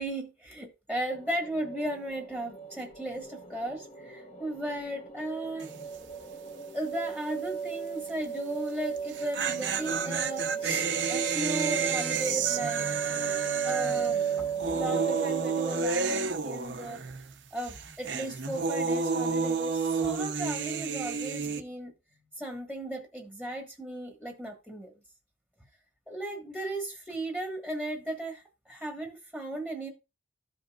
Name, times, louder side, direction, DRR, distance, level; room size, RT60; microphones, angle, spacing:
voice 1, 0.0-5.7 6.7-12.9 13.6-17.0 17.5-21.9 22.4-24.9 26.1-29.9, right 1 dB, 5° left, 1.4 m, -36 dB
sound 1, 1.1-15.9, right 7 dB, 30° left, 1.1 m, -35 dB
sound 2, 5.6-6.0 6.2-6.3 9.0-17.3 17.6-21.6, right 5 dB, 65° right, 0.8 m, -31 dB
14.0 x 5.2 x 2.4 m
head